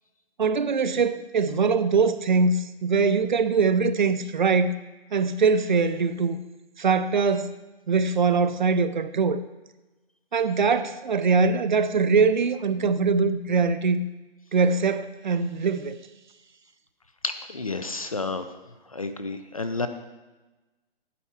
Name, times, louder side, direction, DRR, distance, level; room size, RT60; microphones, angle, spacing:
voice 1, 0.4-4.8 5.1-6.4 6.8-7.5 7.9-9.4 10.3-14.0 14.5-16.0, right 4 dB, 50° right, 0.5 m, -22 dB
voice 2, 17.2-18.4 18.9-19.9, left 3 dB, 35° left, 0.4 m, -30 dB
8.3 x 4.4 x 7.1 m
hypercardioid pair, 175°, 30 cm